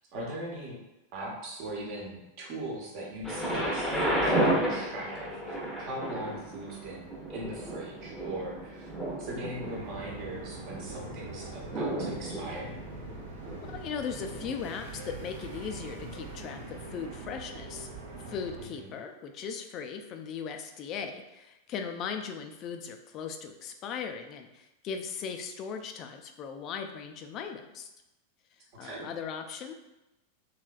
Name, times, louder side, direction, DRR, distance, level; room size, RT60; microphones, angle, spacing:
voice 1, 0.1-0.8 1.1-8.9 9.2-12.7 18.6-18.9 28.8-29.1, right 1 dB, 45° right, -3 dB, 1.0 m, -40 dB
Thunder, 3.2-15.1 15.8-15.9, right 1 dB, ahead, 0.8 m, -33 dB
sound 1, 9.6-18.6, right 3 dB, 70° right, 0.8 m, -43 dB
voice 2, 13.6-17.9 18.3-27.9 28.8-29.7, left 6 dB, 35° left, 5 dB, 0.4 m, -38 dB
3.2 x 2.9 x 2.4 m, 0.94 s
figure-of-eight pair, 90°, 0 cm